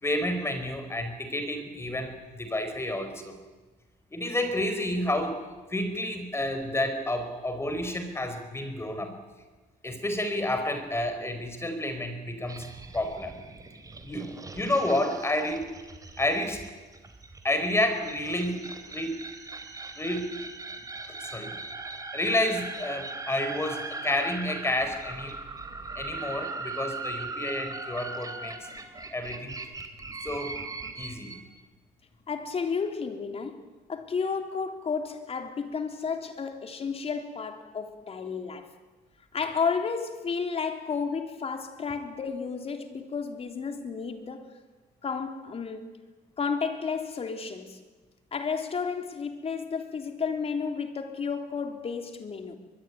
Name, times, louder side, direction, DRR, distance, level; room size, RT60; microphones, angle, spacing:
voice 1, 0.0-3.4 4.1-5.4 5.7-9.1 9.8-12.6 12.9-13.3 14.0-15.6 16.2-16.6 17.4-19.2 19.9-20.2 21.2-21.6 22.1-25.3 25.9-28.5 29.1-29.5 30.2-30.6 31.0-31.4, left 1 dB, 15° left, 5.0 m, -30 dB
sound 1, 12.5-31.4, right 3 dB, 20° right, 3.3 m, -40 dB
voice 2, 32.3-33.6 33.9-38.7 39.3-44.5 45.0-45.9 46.4-47.8 48.3-52.6, left 5 dB, 35° left, 3.5 m, -32 dB
23.0 x 22.5 x 9.6 m
cardioid pair, 110°, 17 cm